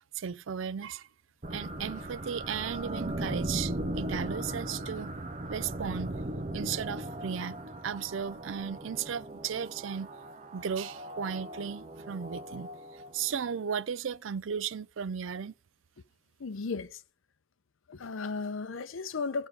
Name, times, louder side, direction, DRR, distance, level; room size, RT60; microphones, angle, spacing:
voice 1, 0.1-1.1 1.5-5.1 5.5-6.1 6.5-7.6 7.8-10.1 10.5-15.5, right 7 dB, 65° right, 0.4 m, -35 dB
sound 1, 1.4-13.4, right 1 dB, 35° right, 0.8 m, -38 dB
voice 2, 16.4-17.0 17.9-19.5, left 4 dB, 70° left, 0.6 m, -35 dB
14.5 x 5.4 x 4.7 m
head